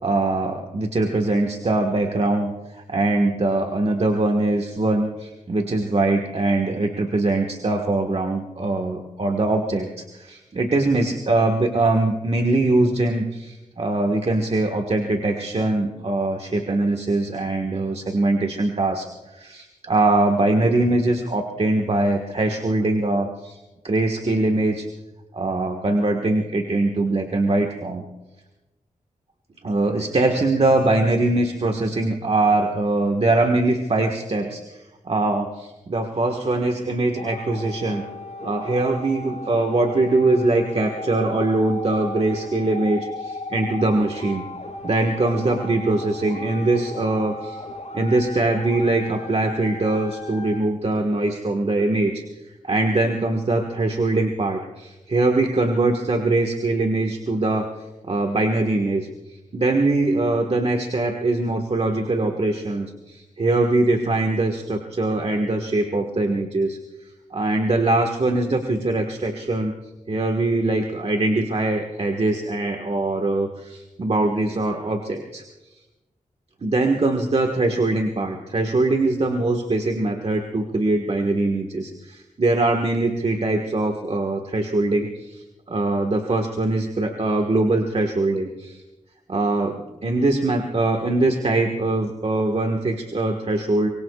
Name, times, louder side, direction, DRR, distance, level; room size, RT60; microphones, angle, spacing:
voice 1, 0.0-19.1 19.3-23.6 23.8-24.9 25.3-28.0 29.6-38.0 38.4-44.5 44.8-47.6 47.9-52.2 52.6-57.7 58.1-59.1 59.5-66.8 67.3-69.7 70.1-75.4 76.6-88.8 89.3-93.9, right 2 dB, 45° right, 3 dB, 1.5 m, -22 dB
sound 1, 37.1-50.6, left 1 dB, 55° left, 4.9 m, -36 dB
24.5 x 23.0 x 2.4 m, 1.1 s
wide cardioid pair, 75°, 14 cm